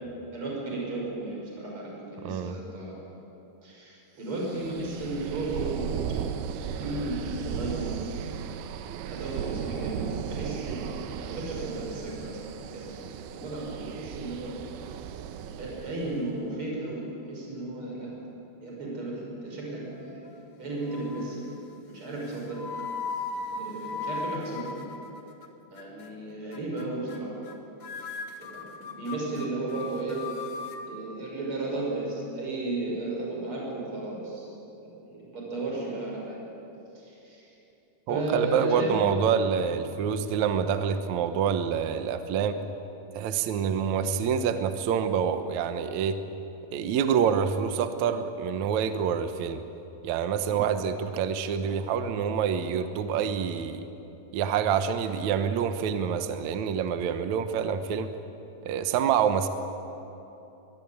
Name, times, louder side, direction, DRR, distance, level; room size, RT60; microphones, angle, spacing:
voice 1, 0.3-3.0 3.6-5.9 6.8-8.1 9.1-14.6 15.4-18.2 18.6-20.2 20.6-21.4 21.9-22.7 23.5-24.7 25.7-27.4 28.4-30.3 30.9-34.5 35.0-36.4 36.9-37.5 38.1-39.0 39.6-39.7 50.5-50.6, right 2 dB, 35° right, -2 dB, 6.6 m, -34 dB
voice 2, 2.2-2.6 38.1-42.6 43.1-46.2 46.7-49.6 50.0-53.9 54.3-58.1 58.6-59.5, right 7 dB, 65° right, 9 dB, 2.0 m, -27 dB
sound 1, 4.4-16.2, right 8 dB, 90° right, 2.9 m, -36 dB
sound 2, 19.9-20.5 20.9-21.4 22.2-25.5 25.8-26.1 26.5-26.8 27.1-27.2 27.4-27.5 27.8-30.8, left 4 dB, 50° left, 2.0 m, -38 dB
23.0 x 22.0 x 8.7 m, 3.0 s
omnidirectional pair, 4.3 m